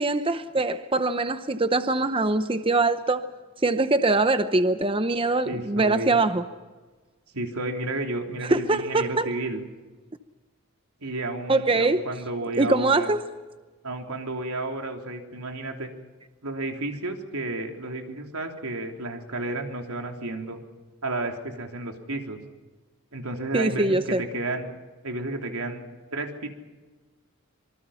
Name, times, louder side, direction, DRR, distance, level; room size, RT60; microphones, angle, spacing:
voice 1, 0.0-3.2 3.6-6.4 8.4-9.3 11.5-12.1 12.6-13.3 23.5-24.2, right 2 dB, 25° right, 0.7 m, -23 dB
voice 2, 5.5-6.2 7.3-9.6 11.0-13.1 13.8-15.9 16.4-20.6 21.0-22.4 23.1-24.7 25.0-25.9 26.1-26.5, right 2 dB, 85° right, 3.4 m, -32 dB
26.0 x 24.0 x 5.7 m
head